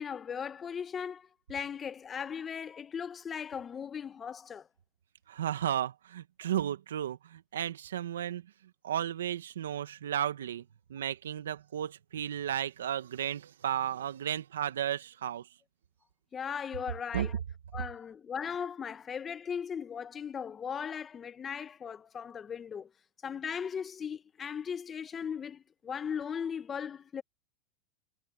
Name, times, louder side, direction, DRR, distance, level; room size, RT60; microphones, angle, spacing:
voice 1, 0.0-4.7 16.3-17.4 17.7-22.9 23.2-27.2, left 7 dB, 25° left, 1.3 m, -38 dB
voice 2, 5.3-8.5 8.8-15.5 17.1-17.3 17.7-17.8, right 10 dB, 90° right, 1.8 m, -34 dB
hypercardioid pair, 110°, 0 cm